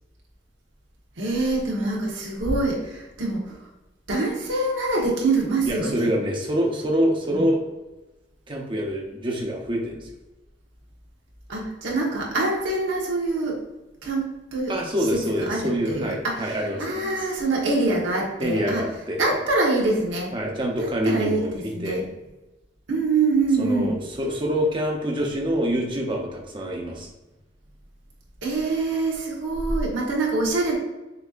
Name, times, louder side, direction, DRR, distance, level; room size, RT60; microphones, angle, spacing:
voice 1, 1.2-3.7 4.1-6.1 7.3-7.5 11.5-13.6 14.0-14.8 15.1-18.8 19.2-20.3 20.8-21.4 21.7-22.0 22.9-24.0 28.4-30.7, right 3 dB, 75° right, -3 dB, 1.3 m, -25 dB
voice 2, 5.7-7.6 8.5-10.1 14.7-17.1 18.4-19.2 20.3-22.0 23.6-27.1, equal, 25° right, 0 dB, 0.8 m, -26 dB
6.6 x 2.8 x 2.5 m, 1.0 s
head